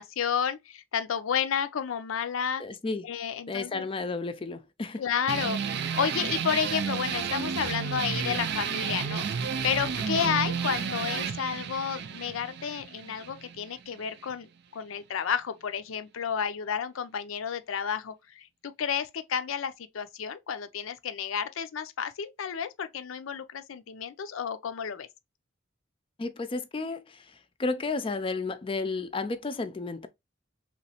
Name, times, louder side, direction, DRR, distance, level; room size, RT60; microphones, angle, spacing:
voice 1, 0.0-2.6 3.0-3.8 5.0-25.1, left 7 dB, 90° left, 0.5 m, -31 dB
voice 2, 2.6-3.1 3.5-5.0 10.2-10.3 26.2-27.2 27.6-30.1, left 3 dB, 25° left, 0.4 m, -32 dB
sound 1, 5.3-14.3, right 7 dB, 55° right, 0.4 m, -32 dB
3.1 x 3.0 x 2.8 m
head